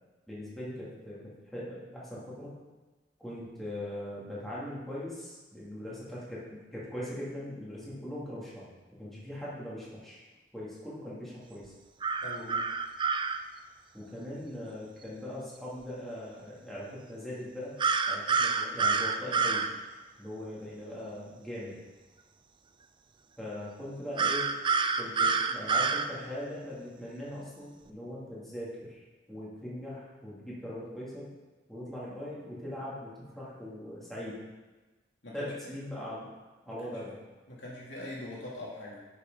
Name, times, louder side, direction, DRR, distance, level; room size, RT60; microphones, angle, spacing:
voice 1, 0.3-1.2 1.5-2.6 3.2-8.7 9.0-10.2 10.5-11.7 13.9-17.8 18.1-19.7 20.2-21.8 23.4-24.5 25.0-29.0 29.3-31.3 31.7-34.4 35.3-36.3 36.6-37.2, left 1 dB, ahead, -8 dB, 2.6 m, -40 dB
sound 1, 12.0-13.4 17.8-19.7 24.2-26.1, right 4 dB, 25° right, 0.4 m, -27 dB
voice 2, 12.2-12.6 35.2-35.5 36.7-37.0 37.5-39.0, left 1 dB, 80° left, -5 dB, 2.8 m, -42 dB
10.0 x 6.7 x 3.9 m, 1.2 s
head